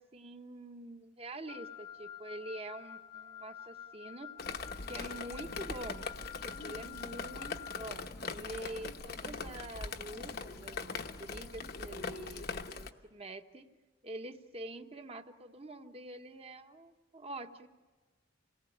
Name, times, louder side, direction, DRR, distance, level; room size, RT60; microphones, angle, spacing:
voice 1, 0.0-4.3 4.9-6.1 6.4-10.9 11.2-13.7 14.0-17.7, right 1 dB, 30° right, 7 dB, 1.2 m, -46 dB
Wind instrument woodwind instrument, 1.5-7.9, left 10 dB, 30° left, 0.9 m, -48 dB
Drip, 4.4-12.9, left 4 dB, 55° left, 1.1 m, -41 dB
28.0 x 19.0 x 8.7 m, 1.3 s
head